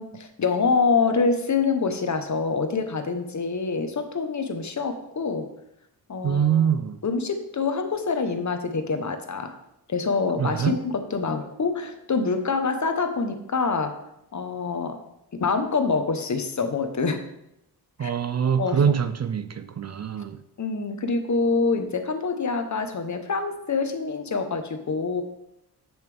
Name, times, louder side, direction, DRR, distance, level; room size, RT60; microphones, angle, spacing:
voice 1, 0.0-5.5 6.1-6.7 7.0-9.5 9.9-13.9 14.3-15.0 15.3-17.2 18.0-18.1 18.6-18.9 20.6-25.2, left 4 dB, 45° left, 1.0 m, -26 dB
voice 2, 6.2-7.0 10.4-10.8 18.0-20.4, right 8 dB, 45° right, 0.4 m, -24 dB
8.1 x 6.6 x 3.4 m
wide cardioid pair, 105°, 39 cm